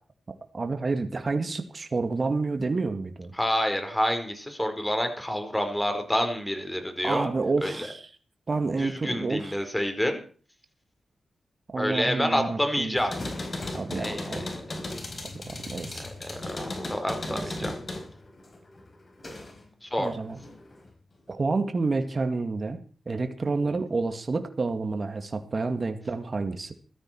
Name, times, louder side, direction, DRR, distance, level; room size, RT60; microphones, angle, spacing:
voice 1, 0.5-3.3 7.0-8.0 8.5-9.5 11.7-13.0 13.7-14.5 15.4-16.0 17.3-17.7 20.0-20.4 21.3-22.8 23.1-26.7, right 3 dB, 45° right, 8 dB, 2.0 m, -29 dB
voice 2, 3.3-7.3 7.6-7.9 8.8-10.2 11.8-13.1 13.9-14.5 16.0-17.7 19.8-20.1 23.6-23.8, equal, 10° left, 6 dB, 4.7 m, -28 dB
sound 1, 13.0-19.7 20.0-20.9, left 2 dB, 45° left, 4.5 m, -36 dB
17.0 x 13.0 x 4.6 m, 0.41 s
cardioid pair, 50°, 0 cm